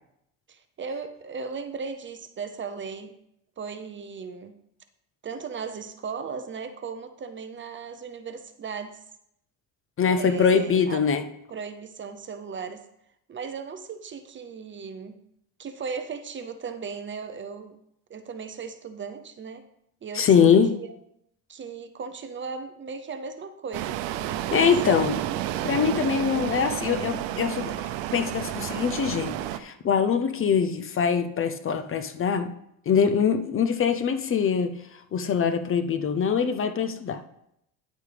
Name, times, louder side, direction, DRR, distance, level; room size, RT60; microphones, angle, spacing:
voice 1, 0.5-3.1 3.6-4.5 5.2-9.0 10.0-11.0 11.5-12.8 13.3-15.2 15.6-17.8 18.1-19.7 20.0-20.9 21.5-24.7, right 5 dB, 30° right, 9 dB, 0.6 m, -37 dB
voice 2, 10.0-11.3 20.1-20.7 24.5-25.2 25.6-27.7 28.1-32.5 32.9-34.7 35.1-37.2, left 7 dB, 30° left, 9 dB, 0.6 m, -23 dB
sound 1, 23.7-29.6, right 13 dB, 90° right, 0.7 m, -31 dB
10.5 x 8.3 x 3.4 m, 0.77 s
cardioid pair, 125°, 41 cm